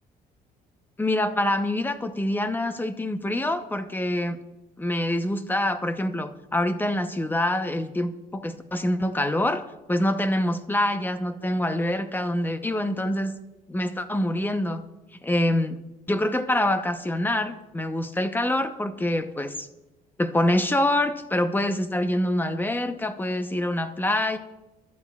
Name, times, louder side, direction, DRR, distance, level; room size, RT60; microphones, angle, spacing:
voice 1, 1.0-4.4 4.8-9.6 9.9-13.3 13.7-14.8 15.2-15.8 16.1-19.7 20.2-24.4, left 1 dB, 10° left, 9 dB, 0.8 m, -25 dB
23.0 x 12.0 x 2.4 m, 0.99 s
cardioid pair, 110°, 17 cm